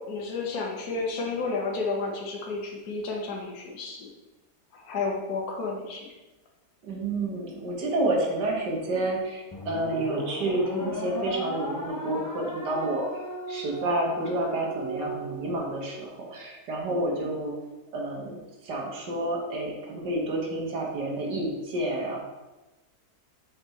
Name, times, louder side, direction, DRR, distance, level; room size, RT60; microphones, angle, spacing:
voice 1, 0.1-4.1 4.9-6.1, left 3 dB, 70° left, 0 dB, 1.6 m, -31 dB
voice 2, 6.8-17.6 17.9-22.2, right 2 dB, 90° right, -1 dB, 2.0 m, -29 dB
sound 1, 9.5-16.0, equal, 25° left, 0.4 m, -36 dB
7.5 x 4.8 x 4.2 m, 1.1 s
omnidirectional pair, 1.8 m